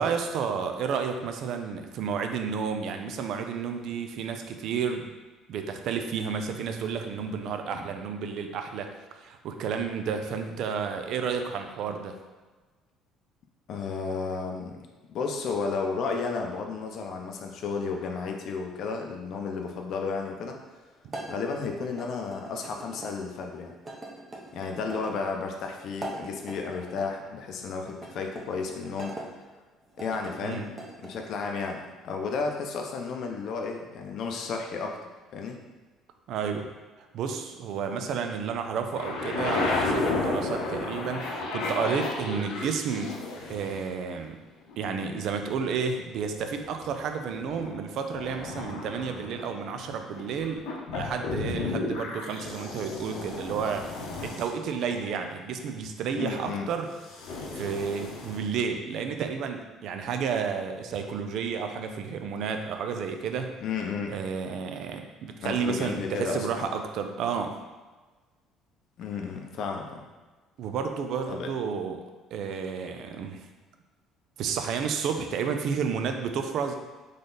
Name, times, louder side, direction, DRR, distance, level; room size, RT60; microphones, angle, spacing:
voice 1, 0.0-5.1 5.5-12.2 21.0-21.1 30.4-30.8 36.3-36.7 37.1-43.2 43.5-44.4 44.8-50.6 50.9-53.8 54.2-56.9 57.5-63.5 64.1-67.5 70.6-72.0 72.3-73.5 74.4-76.8, right 6 dB, 60° right, 6 dB, 0.5 m, -31 dB
voice 2, 13.7-14.8 15.1-20.6 21.3-23.7 24.5-29.2 30.0-30.6 31.0-35.0 35.3-35.6 56.2-56.7 63.6-64.1 65.4-66.7 69.0-70.0 71.3-71.5, left 4 dB, 55° left, 3 dB, 0.6 m, -32 dB
sound 1, 21.1-23.1 23.8-25.2 25.9-27.1 27.9-29.3 29.9-31.2, right 1 dB, 20° right, 0.8 m, -42 dB
sound 2, 38.9-43.9 44.7-45.8 46.2-47.7 48.1-55.6 57.0-58.4, left 3 dB, 85° left, 0.9 m, -33 dB
3.9 x 3.3 x 3.9 m, 1.3 s
cardioid pair, 140°, 0 cm